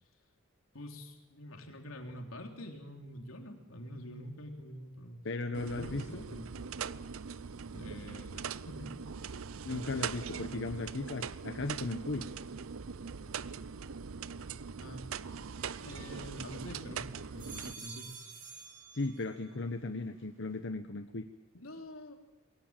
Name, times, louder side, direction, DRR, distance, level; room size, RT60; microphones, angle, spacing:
voice 1, 0.7-5.2 5.6-6.5 7.7-9.0 14.8-15.1 15.8-18.2 21.5-22.1, left 1 dB, 85° left, 3 dB, 3.6 m, -46 dB
voice 2, 5.2-6.2 9.6-12.2 18.9-21.2, left 2 dB, 60° left, 7 dB, 1.0 m, -36 dB
sound 1, 5.5-17.7, right 6 dB, 80° right, 0.7 m, -41 dB
sound 2, 15.6-16.7 17.2-19.6 20.0-20.6, right 5 dB, 45° right, 6.4 m, -51 dB
22.0 x 18.0 x 9.0 m, 1.1 s
head